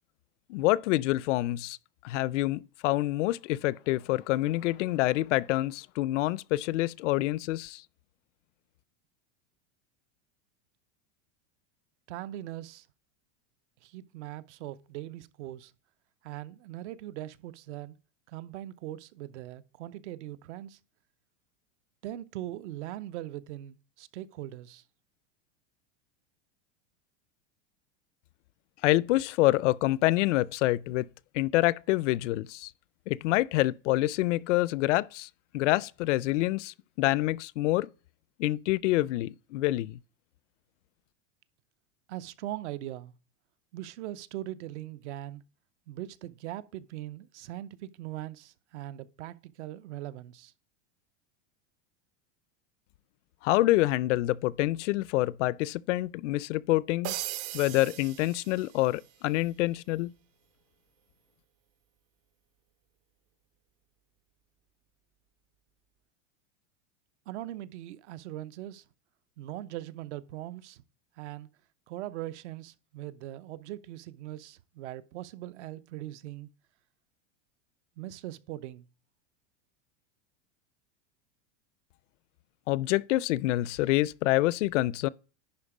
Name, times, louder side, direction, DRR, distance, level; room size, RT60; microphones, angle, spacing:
voice 1, 0.5-1.8 2.0-7.8 28.8-31.1 31.3-32.7 33.1-37.9 38.4-40.0 53.4-57.1 57.5-60.1 82.7-85.1, left 17 dB, 70° left, 0.5 m, -27 dB
voice 2, 12.1-12.9 13.8-15.7 16.2-18.0 18.3-20.8 22.0-24.8 42.1-43.1 43.7-45.4 45.9-50.5 67.3-68.8 69.4-70.8 71.2-71.5 71.9-76.5 78.0-78.9, right 14 dB, 65° right, 0.8 m, -40 dB
sound 1, 57.0-59.1, right 14 dB, 35° right, 0.5 m, -38 dB
10.5 x 4.3 x 4.9 m
supercardioid pair, 165°, 37 cm